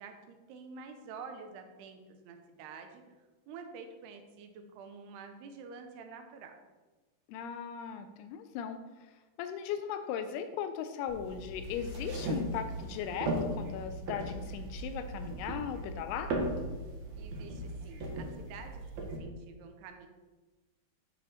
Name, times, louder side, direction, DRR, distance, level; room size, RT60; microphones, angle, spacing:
voice 1, 0.0-3.0 3.5-6.6 17.2-20.1, right 5 dB, 85° right, 6 dB, 2.9 m, -48 dB
voice 2, 7.3-8.8 9.4-16.4, left 8 dB, 85° left, 9 dB, 2.5 m, -38 dB
sound 1, 11.1-19.2, right 1 dB, 60° right, 2.0 m, -37 dB
9.8 x 5.6 x 4.3 m, 1.2 s
omnidirectional pair, 4.6 m